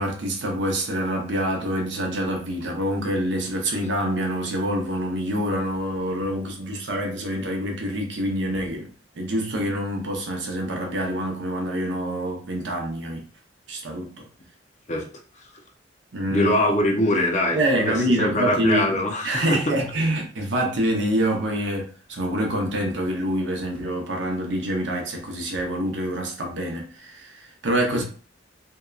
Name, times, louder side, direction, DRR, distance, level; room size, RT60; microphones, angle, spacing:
voice 1, 0.0-8.9 9.2-13.2 13.7-14.3 16.1-16.5 17.5-18.9 19.2-28.0, right 1 dB, 70° right, 0.7 m, -26 dB
voice 2, 16.3-19.8 27.9-28.0, left 1 dB, 40° left, 0.5 m, -23 dB
2.8 x 2.2 x 2.3 m
head